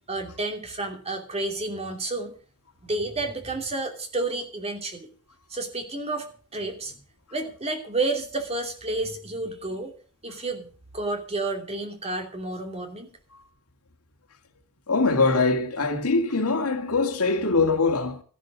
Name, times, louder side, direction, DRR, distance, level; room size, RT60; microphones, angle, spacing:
voice 1, 0.1-2.3 2.8-5.1 5.5-6.3 6.5-7.0 7.3-9.9 10.2-13.1, right 2 dB, 30° right, 2.9 m, -30 dB
voice 2, 14.9-18.2, left 3 dB, 85° left, 2.2 m, -23 dB
14.0 x 11.5 x 6.2 m
head